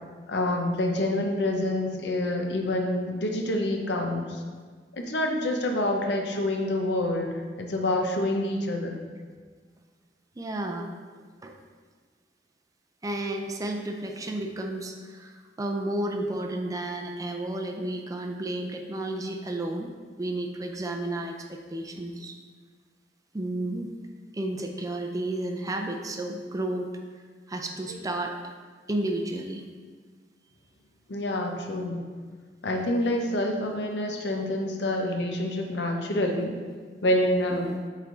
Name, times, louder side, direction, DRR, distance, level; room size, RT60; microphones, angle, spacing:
voice 1, 0.3-4.4 4.9-9.0 27.9-28.0 31.1-32.1 32.6-36.5 37.0-37.7, left 1 dB, 70° left, 3 dB, 0.7 m, -27 dB
voice 2, 10.4-10.9 11.2-11.6 13.0-19.9 20.2-22.4 23.3-23.9 24.3-26.9 27.5-28.3 28.9-29.7 37.5-37.8, right 1 dB, 20° right, 3 dB, 0.4 m, -32 dB
7.9 x 3.3 x 3.9 m, 1.5 s
head